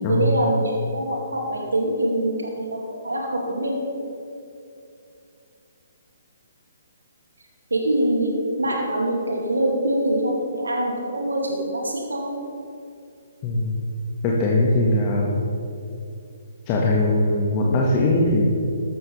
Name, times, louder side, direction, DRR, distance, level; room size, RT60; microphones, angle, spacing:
voice 1, 0.1-3.8 7.7-12.3, right 1 dB, 85° right, -1 dB, 2.5 m, -24 dB
voice 2, 13.4-13.8 14.2-15.3 16.7-18.4, left 1 dB, 30° left, -2 dB, 1.7 m, -20 dB
14.5 x 12.5 x 3.4 m, 2.5 s
figure-of-eight pair, 135°, 0 cm